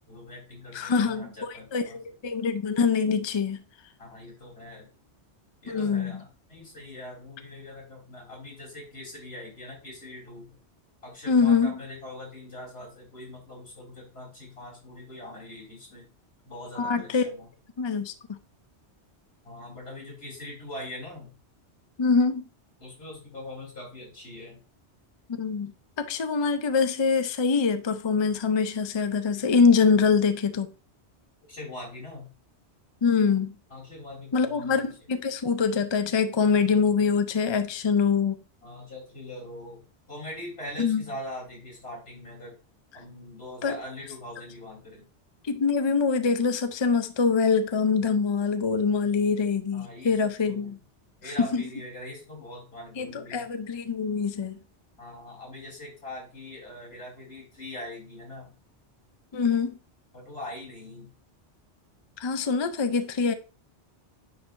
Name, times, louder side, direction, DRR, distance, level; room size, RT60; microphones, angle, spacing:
voice 1, 0.1-2.0 4.0-4.9 5.6-10.6 11.0-16.1 16.4-17.5 19.4-21.4 22.8-24.6 31.5-32.3 33.7-34.8 38.6-42.6 42.9-45.0 49.7-50.1 50.4-50.7 51.2-53.5 55.0-58.5 60.1-61.1, left 1 dB, 60° left, 3.7 m, -42 dB
voice 2, 0.7-3.6 5.7-6.2 11.3-11.8 16.8-17.4 17.8-18.4 22.0-22.4 25.3-30.7 33.0-33.5 34.3-38.4 40.8-41.0 43.6-43.8 45.4-50.8 51.4-51.6 53.0-54.6 59.3-59.8 62.2-63.3, left 5 dB, 45° left, 0.3 m, -24 dB
9.4 x 4.5 x 2.5 m
omnidirectional pair, 1.2 m